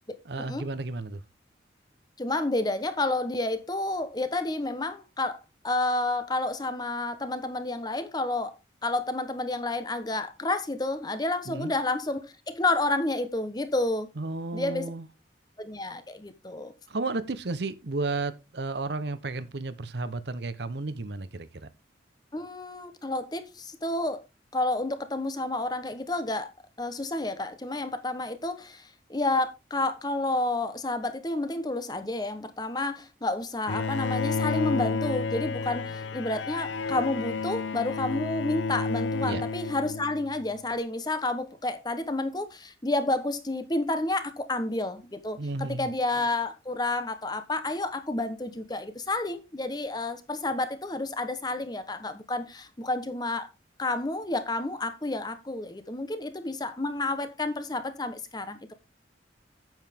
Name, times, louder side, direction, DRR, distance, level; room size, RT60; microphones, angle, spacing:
voice 1, 0.2-1.2 11.5-11.7 14.2-15.1 16.9-21.5 39.2-39.4 45.4-45.9, right 3 dB, 65° right, 0.8 m, -33 dB
voice 2, 2.2-8.5 8.8-14.1 14.5-14.9 15.6-16.7 22.3-24.2 24.5-26.5 26.8-53.5 53.8-58.7, left 2 dB, 20° left, 1.0 m, -30 dB
Bowed string instrument, 33.7-40.4, left 4 dB, 85° left, 0.7 m, -31 dB
9.0 x 8.0 x 3.5 m
head